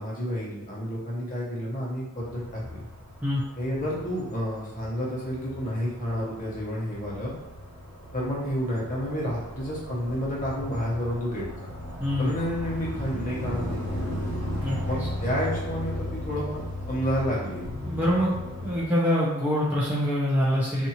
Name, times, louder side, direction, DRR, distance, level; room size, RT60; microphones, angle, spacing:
voice 1, 0.0-2.8 3.6-7.3 8.1-11.5 12.2-14.3 14.9-16.6 16.9-17.7, equal, 40° left, -6 dB, 0.8 m, -30 dB
sound 1, 2.2-18.8, left 1 dB, 55° right, 1.0 m, -36 dB
voice 2, 12.0-12.3 14.6-14.8 17.8-18.3 18.6-20.9, equal, 10° right, -7 dB, 0.4 m, -24 dB
2.6 x 2.4 x 2.8 m, 1.0 s
head